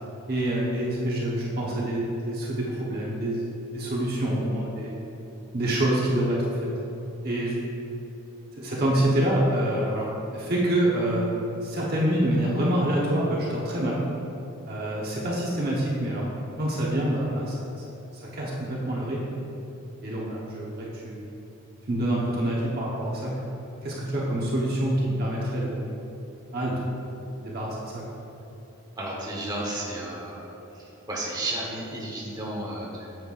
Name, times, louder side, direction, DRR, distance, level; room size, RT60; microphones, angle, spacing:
voice 1, 0.3-3.5 3.7-4.9 5.5-6.7 7.2-7.5 8.6-11.3 11.6-14.0 14.7-16.2 16.6-17.7 18.2-19.4 20.0-21.2 21.9-23.3 23.8-25.8 26.5-26.8 27.4-28.0, right 1 dB, 45° right, -5 dB, 1.1 m, -26 dB
voice 2, 29.0-30.6 31.1-33.3, right 1 dB, 20° right, -5 dB, 1.3 m, -33 dB
9.1 x 7.9 x 2.6 m, 2.9 s
head